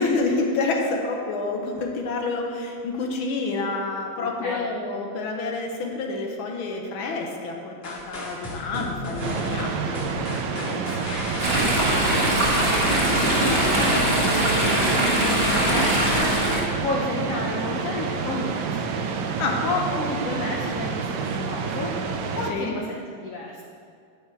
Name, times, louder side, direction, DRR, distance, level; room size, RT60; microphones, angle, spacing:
voice 1, 0.0-10.3 10.5-11.7 19.4-19.6 22.5-22.7, left 3 dB, 90° left, 1 dB, 1.8 m, -28 dB
voice 2, 4.2-4.7 12.6-18.9 19.6-22.1 22.3-22.9 23.2-23.6, left 2 dB, 60° left, -2 dB, 0.9 m, -31 dB
sound 1, 7.8-13.1, left 1 dB, 40° left, 1.8 m, -35 dB
sound 2, 9.2-22.5, right 5 dB, 70° right, 1.2 m, -29 dB
Chatter / Stream, 11.4-16.6, right 1 dB, 35° right, 1.4 m, -22 dB
9.2 x 8.9 x 2.9 m, 2.4 s
omnidirectional pair, 2.2 m